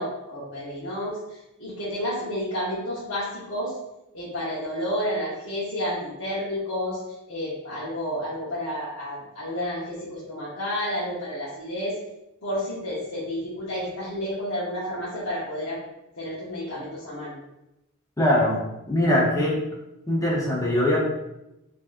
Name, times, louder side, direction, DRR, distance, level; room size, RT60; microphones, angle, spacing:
voice 1, 0.0-3.7 4.1-7.0 7.3-11.9 12.4-15.8 16.2-17.4, equal, 75° left, -9 dB, 1.0 m, -30 dB
voice 2, 18.2-18.6 18.9-19.6 20.1-21.0, left 1 dB, 15° left, -4 dB, 0.7 m, -21 dB
4.6 x 2.8 x 2.4 m, 0.90 s
head